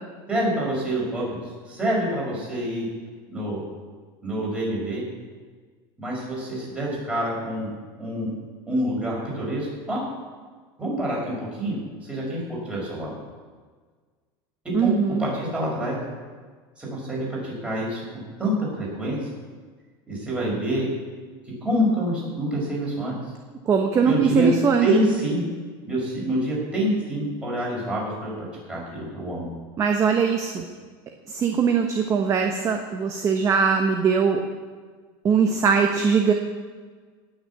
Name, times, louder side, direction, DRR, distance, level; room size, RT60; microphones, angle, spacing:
voice 1, 0.3-1.4 1.7-2.9 3.3-3.6 4.2-5.0 6.0-7.7 8.0-8.3 8.7-10.0 10.8-12.4 12.6-13.1 14.6-16.0 16.8-18.0 18.4-19.2 20.1-20.9 21.6-23.1 24.0-24.5 24.8-25.4 25.9-29.5, right 1 dB, 10° right, -5 dB, 5.6 m, -26 dB
voice 2, 14.7-15.2 23.7-24.9 29.8-30.6 31.3-34.4 35.2-36.3, right 6 dB, 25° right, 4 dB, 1.1 m, -21 dB
18.5 x 6.6 x 8.3 m, 1.5 s
supercardioid pair, 155°, 13 cm